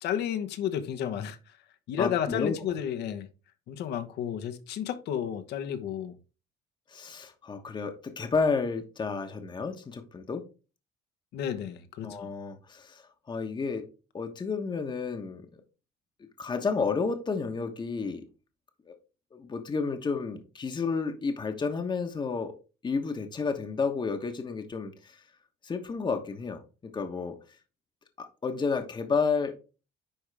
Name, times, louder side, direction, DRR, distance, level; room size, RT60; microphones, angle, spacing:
voice 1, 0.0-1.4 1.9-3.3 3.7-6.1 11.3-12.3, left 9 dB, 70° left, 1.1 m, -32 dB
voice 2, 2.0-2.6 6.9-10.4 12.0-13.8 14.1-15.5 16.4-18.2 18.9-19.0 19.3-22.5 22.8-25.2 25.6-26.6 26.9-27.3 28.2-29.6, left 4 dB, 25° left, 1.1 m, -31 dB
10.0 x 3.6 x 3.4 m
cardioid pair, 105°, 18 cm